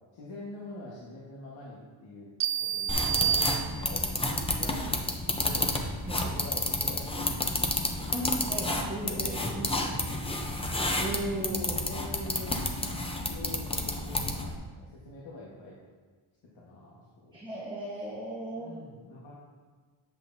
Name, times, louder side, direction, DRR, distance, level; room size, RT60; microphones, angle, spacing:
voice 1, 0.1-2.3 2.6-5.0 5.4-5.8 6.1-8.4 9.0-10.5 11.6-12.9 13.2-15.8 16.4-17.5 18.5-19.4, left 2 dB, 65° left, -6 dB, 1.5 m, -45 dB
sound 1, 2.4-4.2, right 9 dB, 85° right, 0.6 m, -30 dB
sound 2, 2.9-14.6, left 1 dB, 10° left, 0.6 m, -30 dB
voice 2, 8.1-9.7 11.0-11.7 17.3-18.7, right 1 dB, 10° right, -6 dB, 1.1 m, -36 dB
9.1 x 7.7 x 2.7 m, 1.5 s
wide cardioid pair, 155°, 49 cm